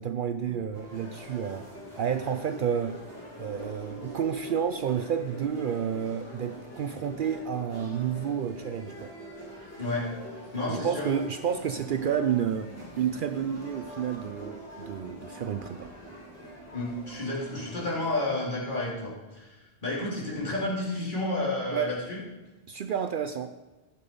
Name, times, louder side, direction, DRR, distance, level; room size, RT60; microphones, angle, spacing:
voice 1, 0.0-1.7 2.0-3.0 3.4-9.1 10.7-15.9 21.7-22.0 22.7-23.6, right 8 dB, 60° right, 9 dB, 0.7 m, -30 dB
sound 1, 0.7-18.2, equal, 15° left, 3.7 m, -44 dB
voice 2, 10.5-11.1 16.7-22.2, left 2 dB, 50° left, -6 dB, 3.3 m, -31 dB
15.0 x 6.9 x 5.3 m, 1.2 s
omnidirectional pair, 1.0 m